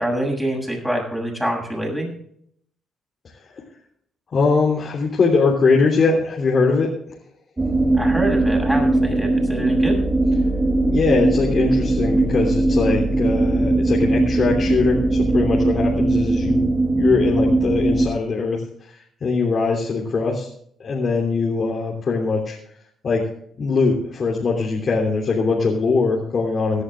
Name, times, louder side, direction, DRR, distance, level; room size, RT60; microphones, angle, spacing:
voice 1, 0.0-2.1 7.9-10.0, right 1 dB, 5° right, 0 dB, 7.3 m, -25 dB
voice 2, 4.3-6.9 10.9-16.6 17.0-20.5 20.8-22.6 23.0-23.2 23.5-26.8, left 4 dB, 45° left, -2 dB, 3.1 m, -21 dB
sound 1, 7.6-18.1, right 2 dB, 20° right, 2.8 m, -19 dB
17.5 x 11.0 x 3.7 m, 0.66 s
cardioid pair, 90°, 0 cm